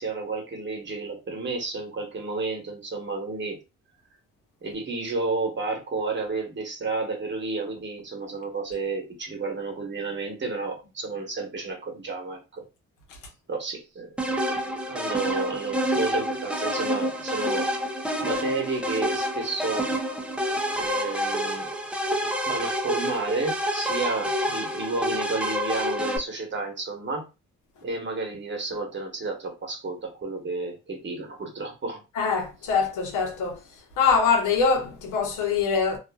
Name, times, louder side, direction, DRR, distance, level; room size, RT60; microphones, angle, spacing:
voice 1, 0.0-3.6 4.6-12.6 13.5-14.3 14.9-17.7 18.2-19.9 20.7-21.7 22.5-27.3 27.8-32.0, right 3 dB, 40° right, 1.1 m, -31 dB
sound 1, 14.2-26.2, equal, 5° right, 0.5 m, -28 dB
voice 2, 32.2-33.6 34.0-36.0, left 5 dB, 85° left, 0.9 m, -23 dB
2.4 x 2.4 x 2.2 m
cardioid pair, 90°, 30 cm